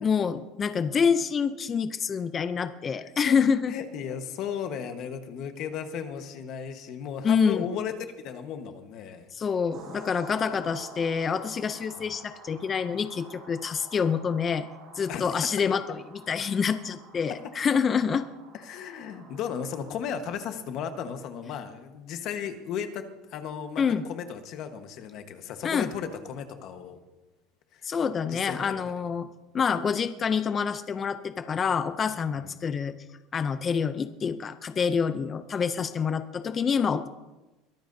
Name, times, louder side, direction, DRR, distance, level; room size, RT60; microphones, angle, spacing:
voice 1, 0.0-3.7 7.2-7.7 9.3-14.7 15.0-16.0 16.3-18.2 23.8-24.0 25.6-25.9 27.8-29.3 29.5-33.0 33.3-37.1, left 6 dB, 20° left, 11 dB, 0.4 m, -27 dB
voice 2, 3.0-3.4 3.7-7.9 8.2-9.3 12.0-12.2 15.1-15.5 18.5-23.8 24.1-27.0 27.7-27.9 28.3-28.8 32.4-32.5, left 8 dB, 40° left, 8 dB, 1.2 m, -35 dB
sound 1, 9.7-20.5, right 3 dB, 40° right, 5.2 m, -48 dB
22.5 x 14.0 x 2.6 m, 1.1 s
cardioid pair, 175°, 0 cm